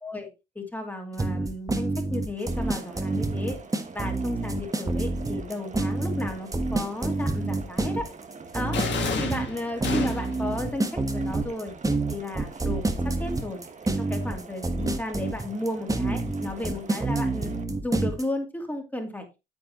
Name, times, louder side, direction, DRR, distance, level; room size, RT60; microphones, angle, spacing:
voice 1, 0.5-3.6 3.9-8.1 8.5-8.8 9.2-11.7 12.1-13.6 14.0-17.5 17.8-19.3, left 1 dB, 10° left, 4 dB, 2.7 m, -34 dB
sound 1, 1.2-18.2, right 2 dB, 15° right, 1.3 m, -27 dB
sound 2, 2.4-17.6, right 4 dB, 35° right, 1.3 m, -46 dB
sound 3, 8.7-10.5, left 6 dB, 65° left, 2.2 m, -30 dB
9.1 x 7.7 x 3.0 m, 0.25 s
cardioid pair, 90°, 20 cm